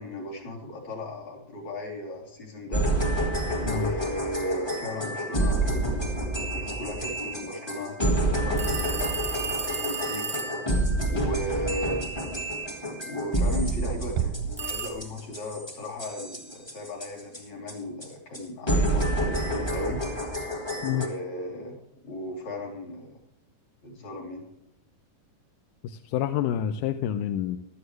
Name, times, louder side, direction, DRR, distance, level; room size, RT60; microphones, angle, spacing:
voice 1, 0.0-2.8 3.6-5.8 6.5-10.3 11.1-12.0 13.1-20.0 20.8-21.8 22.0-23.2 23.8-24.4, equal, 60° left, 0 dB, 4.4 m, -36 dB
sound 1, 2.7-17.4 17.7-17.8 18.0-18.1 18.3-18.4 18.7-21.1, right 1 dB, 20° left, 0.7 m, -28 dB
sound 2, 8.6-10.7 14.6-14.9, right 4 dB, 5° right, 1.0 m, -32 dB
Bass drum, 14.2-15.6, right 10 dB, 90° right, 2.2 m, -33 dB
voice 2, 25.8-27.6, left 10 dB, 85° left, 9 dB, 2.1 m, -28 dB
16.0 x 12.0 x 3.2 m, 0.87 s
omnidirectional pair, 3.7 m